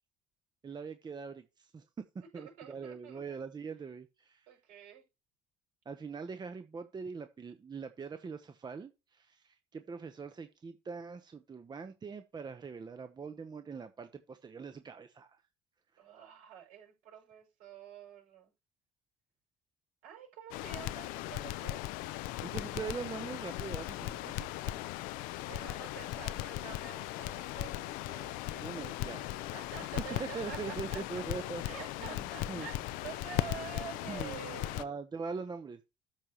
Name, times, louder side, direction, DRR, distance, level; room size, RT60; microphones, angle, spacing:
voice 1, 0.6-1.8 2.3-4.5 5.8-15.4 22.4-24.8 28.6-29.2 30.2-32.7 34.1-35.8, right 5 dB, 30° right, 0.9 m, -42 dB
voice 2, 2.3-3.4 4.5-5.0 16.0-18.5 20.0-21.8 25.4-31.0 31.6-34.8, right 9 dB, 70° right, 5.5 m, -48 dB
Crackle, 20.5-34.8, left 16 dB, 70° left, 0.5 m, -38 dB
13.0 x 4.8 x 3.0 m
hypercardioid pair, 65°, 15 cm